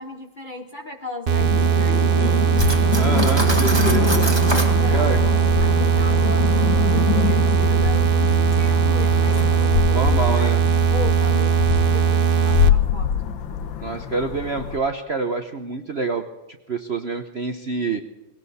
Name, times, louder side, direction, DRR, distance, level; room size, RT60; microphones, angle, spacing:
voice 1, 0.0-2.8 3.2-3.7 4.5-5.3 5.6-10.6 10.9-13.1, left 3 dB, 35° left, 4 dB, 0.8 m, -36 dB
sound 1, 1.3-12.7, right 8 dB, 80° right, 0.4 m, -19 dB
sound 2, 1.4-14.8, left 9 dB, 75° left, 1.8 m, -25 dB
voice 2, 2.2-2.5 3.0-4.1 4.9-5.2 9.9-10.6 13.8-16.2 16.7-18.0, right 4 dB, 50° right, 6 dB, 0.8 m, -27 dB
Cutlery silverware, 2.6-4.7, right 1 dB, 15° right, 1.7 m, -26 dB
20.0 x 17.5 x 4.2 m, 1.1 s
omnidirectional pair, 2.1 m